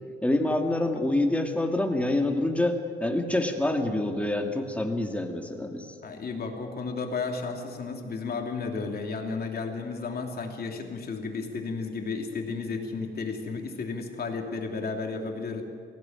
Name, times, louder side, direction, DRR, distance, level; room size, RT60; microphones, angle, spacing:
voice 1, 0.2-5.9, left 1 dB, 5° left, 3 dB, 2.4 m, -26 dB
voice 2, 6.0-15.6, left 4 dB, 50° left, 2 dB, 3.0 m, -33 dB
18.5 x 16.0 x 9.1 m, 2.1 s
cardioid pair, 90°, 20 cm